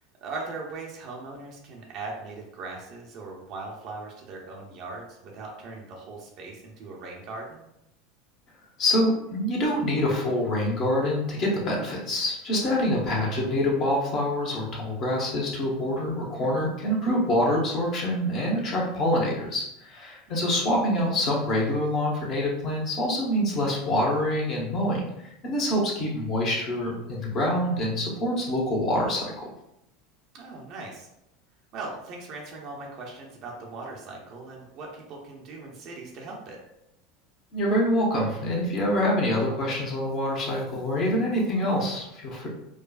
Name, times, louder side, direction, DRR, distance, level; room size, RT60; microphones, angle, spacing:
voice 1, 0.2-7.6 20.3-20.5 30.3-31.1 31.7-36.6, right 3 dB, 50° right, -1 dB, 0.7 m, -39 dB
voice 2, 8.8-25.0 25.4-29.5 37.5-42.5, left 1 dB, 45° left, -2 dB, 1.1 m, -26 dB
4.7 x 2.2 x 2.4 m, 0.83 s
figure-of-eight pair, 80°, 0 cm